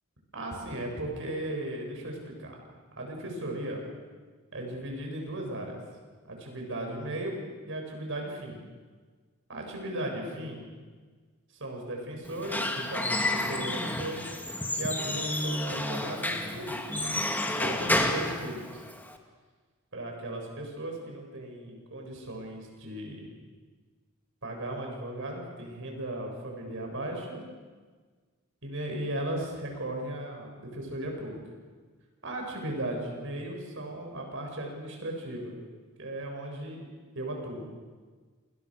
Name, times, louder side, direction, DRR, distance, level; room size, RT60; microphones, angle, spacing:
voice 1, 0.3-2.6 3.0-3.8 4.5-5.8 6.3-7.4 7.7-8.6 9.5-10.6 11.5-14.3 14.8-17.0 17.6-18.9 19.9-23.3 24.4-27.5 28.6-31.4 32.2-35.6 36.0-36.9 37.1-37.7, right 1 dB, 60° right, 1 dB, 7.9 m, -36 dB
Squeak / Wood, 12.2-19.2, left 1 dB, 10° left, 2.2 m, -30 dB
28.5 x 28.0 x 6.7 m, 1.4 s
head